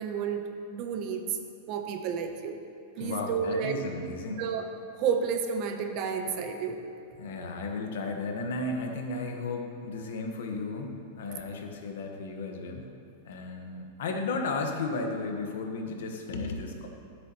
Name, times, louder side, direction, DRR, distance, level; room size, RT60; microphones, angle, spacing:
voice 1, 0.0-1.4 1.7-2.6 3.0-3.8 4.4-6.8, right 6 dB, 35° right, 6 dB, 0.7 m, -31 dB
voice 2, 3.0-4.4 7.2-12.9 13.2-16.9, left 3 dB, 75° left, 3 dB, 1.1 m, -34 dB
13.0 x 7.8 x 2.9 m, 2.5 s
supercardioid pair, 165°, 0 cm